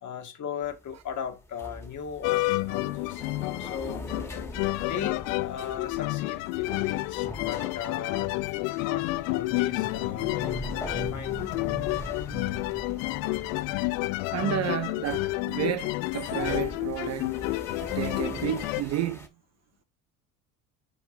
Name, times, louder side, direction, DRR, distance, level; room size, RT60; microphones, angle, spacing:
voice 1, 0.0-3.3 3.6-4.0 4.8-8.3 8.8-11.6, left 8 dB, 40° left, 1.8 m, -38 dB
sound 1, 0.6-19.3, equal, 5° left, 1.8 m, -42 dB
sound 2, 2.2-18.8, left 21 dB, 60° left, 0.5 m, -30 dB
voice 2, 14.3-17.3 17.8-19.3, right 12 dB, 35° right, 0.6 m, -31 dB
7.2 x 4.5 x 4.9 m
figure-of-eight pair, 65°, 45 cm